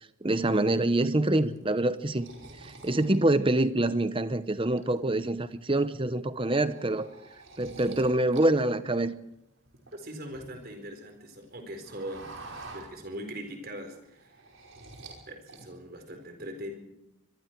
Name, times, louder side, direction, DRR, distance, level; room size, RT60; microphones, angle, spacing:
voice 1, 0.2-2.3 2.6-7.1 7.6-9.1, right 1 dB, 25° right, 13 dB, 0.9 m, -26 dB
sound 1, 1.4-4.1 4.5-5.3 5.6-5.9 6.2-8.5 8.7-10.8 11.1-13.5 13.8-15.2 15.5-16.1, right 3 dB, 65° right, 5.4 m, -48 dB
voice 2, 9.9-12.3 12.7-14.5 15.3-16.8, equal, 45° right, 5 dB, 4.3 m, -41 dB
25.0 x 22.5 x 4.7 m, 0.85 s
head